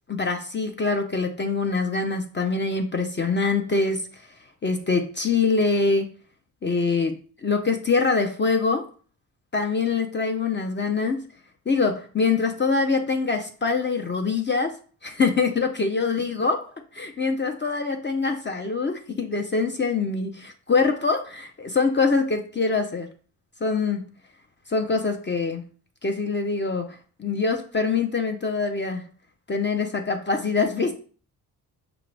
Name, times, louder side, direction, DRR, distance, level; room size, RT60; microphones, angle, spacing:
voice 1, 0.1-4.0 4.6-6.1 6.6-7.1 7.4-8.9 9.5-11.3 11.7-14.8 15.0-23.1 23.6-24.0 24.7-25.6 26.0-29.0 29.5-30.9, left 4 dB, 30° left, 5 dB, 0.6 m, -24 dB
5.9 x 2.4 x 3.2 m, 0.40 s
cardioid pair, 70°, 39 cm